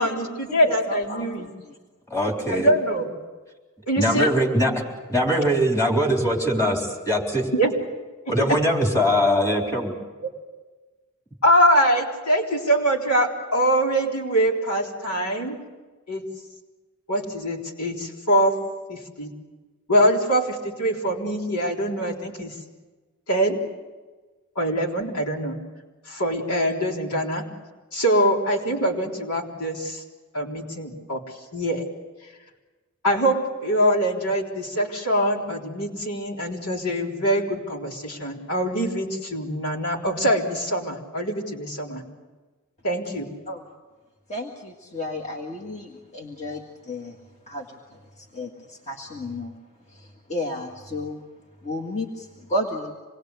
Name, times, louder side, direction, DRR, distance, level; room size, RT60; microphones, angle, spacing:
voice 1, 0.0-1.5 2.5-3.1 3.9-4.3 7.5-7.7 8.3-8.5 11.4-15.6 16.1-16.2 17.1-18.6 18.9-19.3 19.9-22.5 23.3-23.6 24.6-25.6 26.1-27.4 27.9-30.0 30.3-31.2 31.5-31.9 33.0-42.0 42.8-43.3, equal, 85° left, 0 dB, 3.8 m, -23 dB
voice 2, 0.6-1.8 43.5-43.6 44.3-47.2 47.5-49.6 49.9-51.2 51.6-52.9, left 1 dB, 30° left, 0 dB, 1.9 m, -33 dB
voice 3, 2.1-2.7 4.0-4.7 5.1-7.5 8.3-9.9, equal, 15° left, 0 dB, 3.9 m, -21 dB
26.5 x 21.0 x 8.2 m, 1.3 s
head